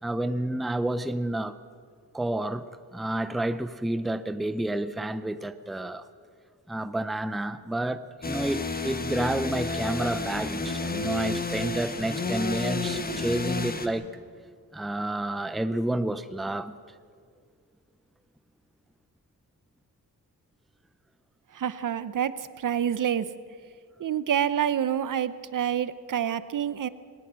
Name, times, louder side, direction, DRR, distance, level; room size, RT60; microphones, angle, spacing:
voice 1, 0.0-1.6 2.1-6.0 6.7-14.1 14.7-16.8, right 1 dB, ahead, 0.5 m, -30 dB
sound 1, 8.2-13.9, left 3 dB, 25° left, 1.2 m, -31 dB
voice 2, 21.5-23.3 24.0-26.9, right 9 dB, 55° right, 0.8 m, -27 dB
20.5 x 19.5 x 7.5 m
wide cardioid pair, 165°, 38 cm